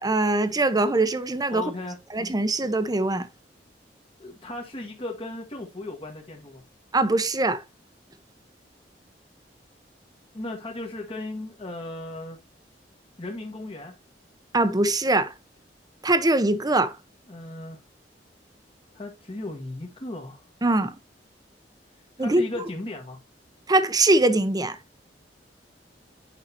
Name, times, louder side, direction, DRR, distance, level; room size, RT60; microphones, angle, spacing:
voice 1, 0.0-1.6 2.1-3.3 6.9-7.6 14.5-15.3 16.0-16.9 20.6-20.9 22.2-22.4 23.7-24.8, right 2 dB, 20° right, 0.8 m, -22 dB
voice 2, 1.5-2.0 4.2-6.6 10.3-12.4 13.2-13.9 17.3-17.8 18.9-20.4 22.2-23.2, left 2 dB, 30° left, 1.5 m, -36 dB
9.0 x 5.7 x 2.7 m
head